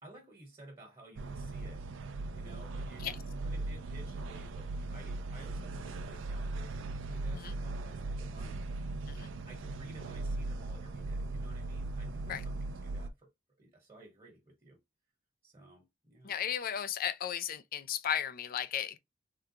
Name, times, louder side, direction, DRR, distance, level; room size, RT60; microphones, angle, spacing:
voice 1, 0.0-1.8 2.3-3.1 3.4-6.8 7.0-8.6 9.5-13.3 13.6-14.8 15.4-16.3, right 1 dB, 25° right, 1.2 m, -54 dB
sound 1, 1.2-13.1, right 2 dB, 70° right, 0.4 m, -39 dB
voice 2, 16.2-19.0, left 9 dB, 50° left, 0.4 m, -35 dB
3.7 x 2.2 x 2.8 m
head